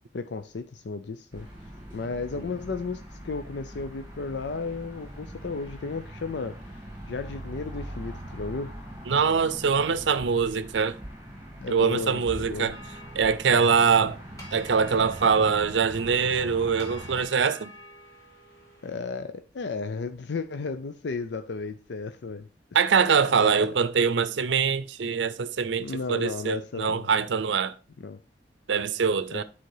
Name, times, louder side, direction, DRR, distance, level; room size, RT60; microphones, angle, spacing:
voice 1, 0.1-1.5 1.9-6.8 7.1-8.7 11.6-12.7 18.8-22.8 23.3-23.6 25.8-27.1 28.0-28.2 29.3-29.4, left 4 dB, 70° left, 0.5 m, -34 dB
sound 1, 1.3-17.2, right 1 dB, 15° right, 3.4 m, -42 dB
voice 2, 9.1-11.0 11.7-12.8 13.2-14.2 14.5-17.7 22.7-27.8 28.7-29.4, right 6 dB, 85° right, 0.5 m, -23 dB
sound 2, 12.7-18.9, left 1 dB, 20° left, 2.6 m, -49 dB
9.3 x 4.2 x 4.7 m
head